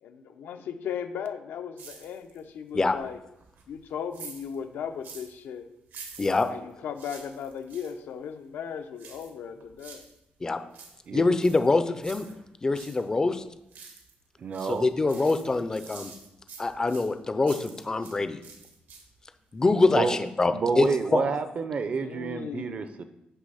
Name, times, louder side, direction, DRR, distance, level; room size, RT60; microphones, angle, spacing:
voice 1, 0.0-3.2 3.7-5.7 6.5-10.0 22.0-22.9, left 7 dB, 85° left, 7 dB, 0.6 m, -37 dB
sound 1, 1.8-2.5 2.9-5.4 5.9-8.0 9.0-10.2 10.5-13.0 13.4-14.2 14.5-18.2 18.4-19.3 19.6-19.7, right 5 dB, 80° right, 1.2 m, -48 dB
voice 2, 11.1-12.2 12.6-13.4 14.6-16.1 16.6-18.4 19.5-21.2, left 3 dB, 20° left, 10 dB, 0.4 m, -24 dB
voice 3, 14.4-14.9 19.9-20.2 20.5-23.0, right 4 dB, 40° right, 10 dB, 0.5 m, -29 dB
8.2 x 3.3 x 5.5 m, 0.87 s
wide cardioid pair, 160°, 3 cm